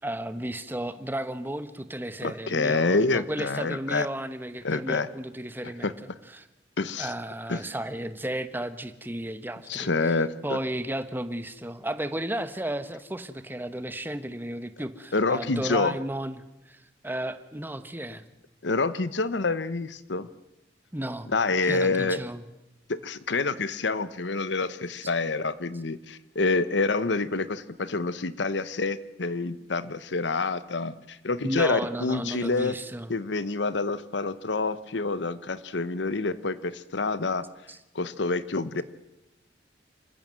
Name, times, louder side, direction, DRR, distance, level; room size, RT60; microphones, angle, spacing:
voice 1, 0.0-6.0 6.3-6.5 7.0-10.1 10.4-18.2 20.9-21.3 21.6-22.4 31.4-33.1 37.7-37.8, right 1 dB, 10° right, 11 dB, 1.1 m, -34 dB
voice 2, 2.2-4.1 4.6-5.1 5.8-5.9 6.8-7.1 7.5-7.6 9.7-10.6 15.1-15.9 18.6-20.3 21.3-22.2 22.9-32.8 33.1-37.5 37.9-38.8, left 3 dB, 80° left, 15 dB, 1.0 m, -27 dB
27.0 x 15.0 x 7.6 m, 0.97 s
head